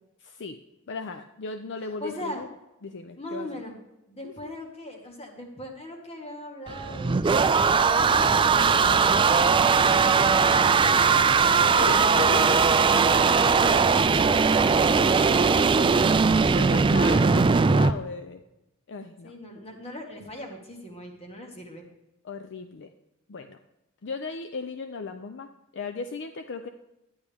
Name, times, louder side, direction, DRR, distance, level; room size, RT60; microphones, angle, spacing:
voice 1, 0.2-0.6 0.9-2.5 2.8-3.6 4.2-4.5 11.6-12.8 16.5-18.4 18.9-19.3 22.2-22.9 23.3-23.6 24.0-26.7, left 4 dB, 60° left, 8 dB, 0.5 m, -36 dB
voice 2, 2.0-2.4 3.2-3.8 4.1-10.8 12.7-16.0 19.2-21.9, equal, 30° left, 2 dB, 1.8 m, -40 dB
sound 1, 6.7-17.9, right 5 dB, 25° right, 0.3 m, -20 dB
11.5 x 9.6 x 3.5 m, 0.94 s
head